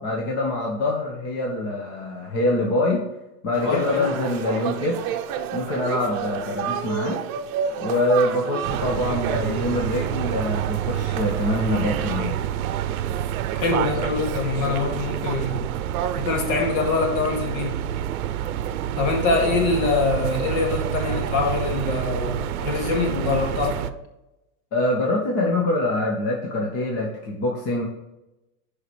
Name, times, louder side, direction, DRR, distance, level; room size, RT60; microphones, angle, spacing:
voice 1, 0.0-3.0 3.4-5.1 5.5-7.2 7.8-12.3 24.7-27.8, left 2 dB, 35° left, -1 dB, 1.5 m, -24 dB
sound 1, 3.5-12.2, right 8 dB, 40° right, 0.8 m, -31 dB
voice 2, 3.6-4.1 13.5-15.7 16.2-17.7 19.0-23.8, left 3 dB, 50° left, 2 dB, 2.4 m, -24 dB
sound 2, 8.6-23.9, right 11 dB, 75° right, 0.7 m, -28 dB
11.5 x 5.0 x 3.2 m, 0.95 s
supercardioid pair, 135°, 44 cm